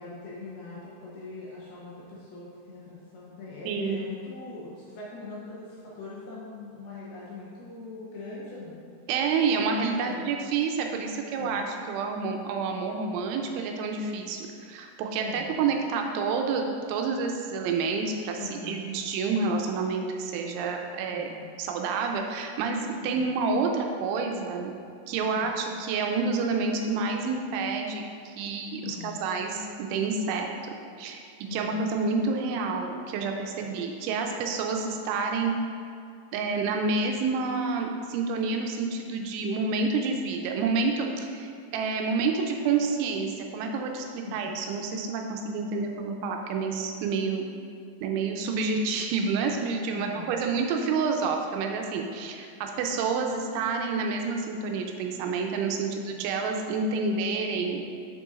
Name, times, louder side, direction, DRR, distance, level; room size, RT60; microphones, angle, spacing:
voice 1, 0.0-8.8 9.8-10.3 11.3-11.7 15.2-15.6 18.3-18.8 21.1-21.5 23.0-23.3 25.2-25.6 28.8-29.2 31.5-31.9 44.2-44.5 49.9-50.4, left 3 dB, 75° left, -7 dB, 2.4 m, -42 dB
voice 2, 3.7-4.0 9.1-21.3 21.6-24.7 25.1-30.5 31.0-31.2 31.5-35.6 36.3-47.5 48.0-57.9, right 4 dB, 90° right, 2 dB, 3.0 m, -29 dB
7.2 x 6.8 x 2.5 m, 2.3 s
omnidirectional pair, 5.4 m